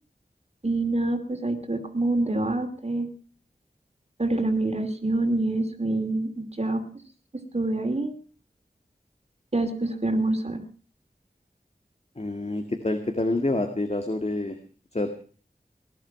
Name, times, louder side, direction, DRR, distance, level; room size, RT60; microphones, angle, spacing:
voice 1, 0.6-3.1 4.2-6.8 7.5-8.1 9.5-10.6, right 2 dB, 40° right, 5 dB, 2.9 m, -26 dB
voice 2, 12.2-14.6 14.9-15.1, left 2 dB, 40° left, 6 dB, 1.9 m, -27 dB
20.0 x 11.5 x 5.9 m, 0.40 s
wide cardioid pair, 55°, 17 cm